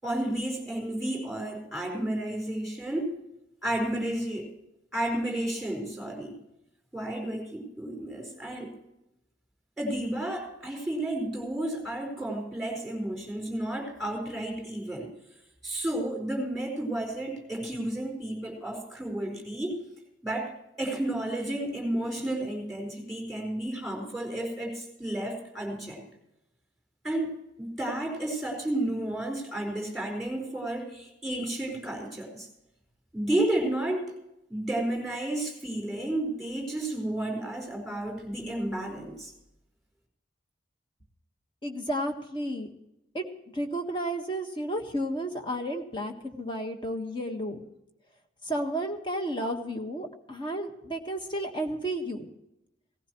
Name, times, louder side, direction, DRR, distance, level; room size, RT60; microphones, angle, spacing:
voice 1, 0.0-3.1 3.6-4.5 4.9-6.4 6.9-8.7 9.8-15.1 15.6-19.8 20.2-20.5 20.8-26.0 27.0-32.5 33.1-34.1 34.5-39.3, right 1 dB, ahead, 1 dB, 4.6 m, -32 dB
voice 2, 41.6-42.7 43.1-43.2 43.5-47.6 48.5-52.2, right 1 dB, 25° left, 4 dB, 1.5 m, -32 dB
17.5 x 15.0 x 3.1 m, 0.86 s
head